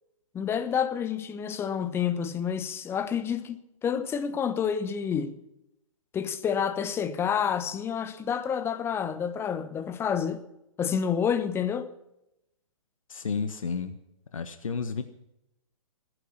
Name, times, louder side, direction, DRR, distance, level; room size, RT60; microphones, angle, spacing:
voice 1, 0.3-5.4 6.1-10.4 10.8-11.9, left 7 dB, 15° left, 1.1 m, -29 dB
voice 2, 13.1-14.0 14.3-15.0, left 5 dB, 70° left, 1.4 m, -31 dB
21.0 x 9.9 x 5.9 m
hypercardioid pair, 130°, 17 cm